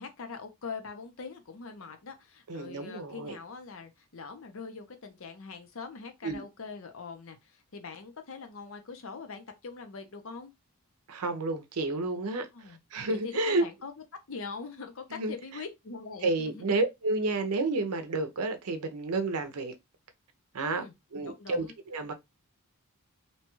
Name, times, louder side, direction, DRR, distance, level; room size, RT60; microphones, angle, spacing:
voice 1, 0.0-10.5 12.5-12.8 13.1-13.9 14.3-16.6 20.6-20.9 21.2-21.7, left 4 dB, 60° left, 0.6 m, -43 dB
voice 2, 2.5-3.4 6.2-6.4 11.1-13.6 15.1-15.3 16.2-19.7 20.5-20.8 21.1-22.1, right 2 dB, 80° right, 0.6 m, -30 dB
2.8 x 2.3 x 2.9 m
head